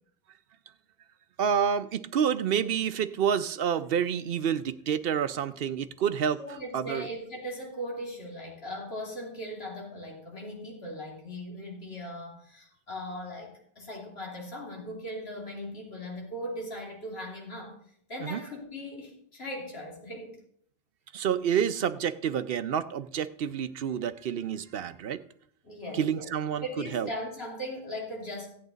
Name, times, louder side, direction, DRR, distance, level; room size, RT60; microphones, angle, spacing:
voice 1, 1.4-6.4 6.7-7.1 18.2-18.4 21.1-25.2 25.9-26.6 26.9-27.1, right 8 dB, 60° right, 13 dB, 0.7 m, -28 dB
voice 2, 6.4-17.8 18.1-20.4 25.6-28.5, equal, 55° left, -1 dB, 3.2 m, -39 dB
16.0 x 8.5 x 3.9 m, 0.65 s
omnidirectional pair, 1.3 m